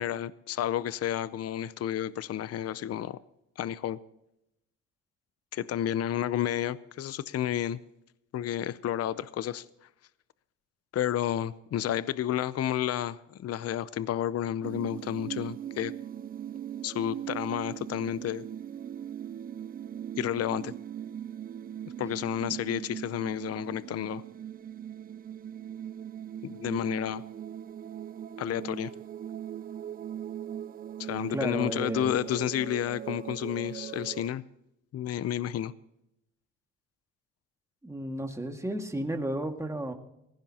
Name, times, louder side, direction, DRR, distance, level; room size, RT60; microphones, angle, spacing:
voice 1, 0.0-3.2 3.6-4.0 5.5-7.8 8.3-9.6 10.9-15.9 16.8-18.4 20.2-20.7 22.0-24.2 26.4-27.2 28.4-28.9 31.0-34.4 34.9-35.7, left 11 dB, 55° left, 17 dB, 0.6 m, -31 dB
sound 1, 14.6-34.3, right 10 dB, 30° right, 0.4 m, -40 dB
voice 2, 31.3-32.1 37.8-39.9, right 1 dB, 10° right, 4 dB, 2.0 m, -33 dB
18.5 x 15.5 x 2.9 m, 0.84 s
cardioid pair, 90°, 30 cm